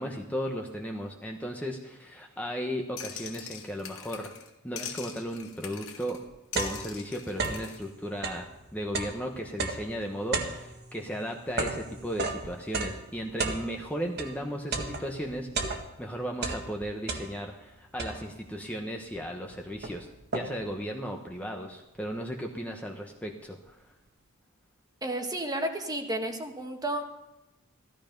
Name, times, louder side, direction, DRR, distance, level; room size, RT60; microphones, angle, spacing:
voice 1, 0.0-4.3 4.6-6.2 6.5-20.1 20.3-23.8, equal, 5° left, 1 dB, 1.1 m, -35 dB
sound 1, 3.0-4.5 4.8-6.2 6.5-7.8, left 8 dB, 65° left, 1.8 m, -42 dB
sound 2, 6.3-7.8 8.1-14.4 14.7-16.1 16.4-17.6 18.0-18.5 19.1-19.2 19.5-20.8, right 3 dB, 50° right, 1.7 m, -34 dB
voice 2, 25.0-27.0, right 1 dB, 15° right, 4 dB, 1.5 m, -32 dB
15.5 x 13.5 x 5.3 m, 0.96 s
head